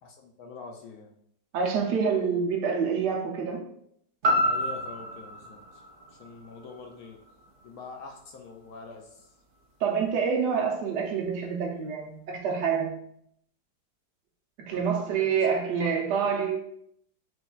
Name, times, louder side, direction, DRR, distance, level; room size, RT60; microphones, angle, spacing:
voice 1, 0.0-1.1 4.4-5.8 6.1-7.2 7.6-9.3 14.7-14.8 15.1-15.9 16.2-16.3, left 4 dB, 70° left, 0.9 m, -45 dB
voice 2, 1.5-3.7 9.8-13.0 14.6-16.6, right 6 dB, 80° right, 1.3 m, -27 dB
sound 1, 4.2-8.3 8.8-8.9, equal, 45° right, 0.7 m, -30 dB
6.3 x 2.6 x 2.3 m
omnidirectional pair, 1.8 m